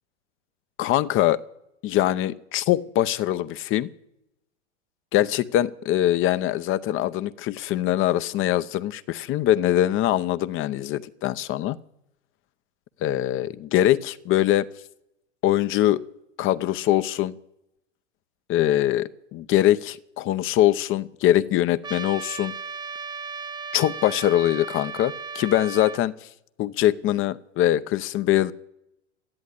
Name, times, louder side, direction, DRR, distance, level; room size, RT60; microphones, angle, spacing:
voice 1, 0.8-1.4 1.8-3.9 5.1-11.8 13.0-14.7 15.4-16.0 16.4-17.3 18.5-22.5 23.7-26.1 26.6-28.5, left 13 dB, 35° left, 14 dB, 0.7 m, -23 dB
Trumpet, 21.8-26.0, right 5 dB, 10° right, 0.7 m, -35 dB
13.5 x 10.5 x 9.8 m, 0.83 s
hypercardioid pair, 120°, 36 cm